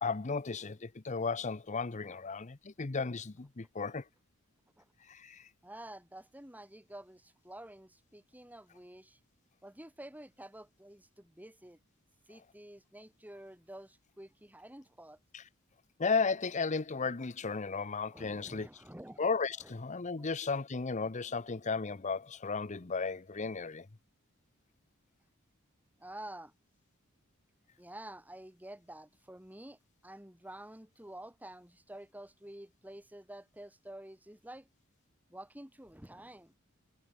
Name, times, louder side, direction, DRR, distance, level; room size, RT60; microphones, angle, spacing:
voice 1, 0.0-4.0 5.1-5.4 15.3-15.4 16.0-18.7 19.2-23.9, left 4 dB, 35° left, 0.7 m, -34 dB
voice 2, 5.6-9.2 9.6-11.8 12.3-15.2 18.1-19.2 19.6-19.7 20.2-20.3 21.4-21.5 26.0-26.5 27.8-34.7 35.3-36.6, right 1 dB, 10° right, 4.0 m, -49 dB
head